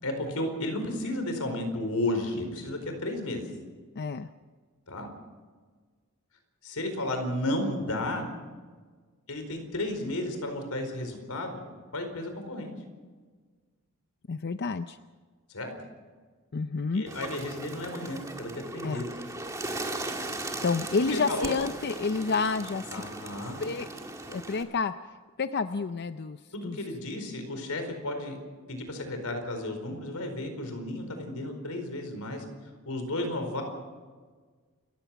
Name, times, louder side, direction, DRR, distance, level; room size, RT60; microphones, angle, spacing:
voice 1, 0.0-3.4 4.9-5.1 6.6-8.3 9.3-11.6 11.9-12.7 15.5-15.7 16.9-19.1 20.9-21.5 22.9-23.6 26.5-28.4 28.7-32.4 32.8-33.6, left 1 dB, 90° left, 6 dB, 4.7 m, -33 dB
voice 2, 4.0-4.3 14.3-15.0 16.5-17.0 18.8-19.0 20.6-22.9 23.6-23.9 24.3-24.9 25.4-26.4 26.6-26.8, left 4 dB, 50° left, 10 dB, 0.5 m, -29 dB
Bird, 17.1-24.6, right 2 dB, 15° right, 1.9 m, -38 dB
29.0 x 15.5 x 5.9 m, 1.5 s
head